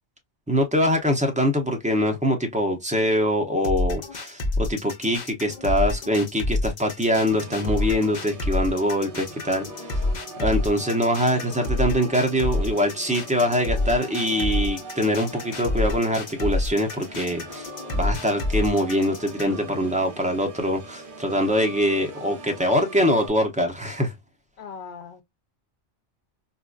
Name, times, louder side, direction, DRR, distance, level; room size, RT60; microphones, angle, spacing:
voice 1, 0.5-9.6 9.9-10.0 10.4-17.7 17.9-24.1, equal, 10° right, 0.5 m, -23 dB
sound 1, 3.6-19.6, left 2 dB, 45° left, 0.8 m, -28 dB
Organ, 7.3-23.3, right 3 dB, 55° right, 0.8 m, -41 dB
voice 2, 24.6-25.2, left 6 dB, 70° left, 0.9 m, -40 dB
4.1 x 2.5 x 2.3 m
omnidirectional pair, 1.1 m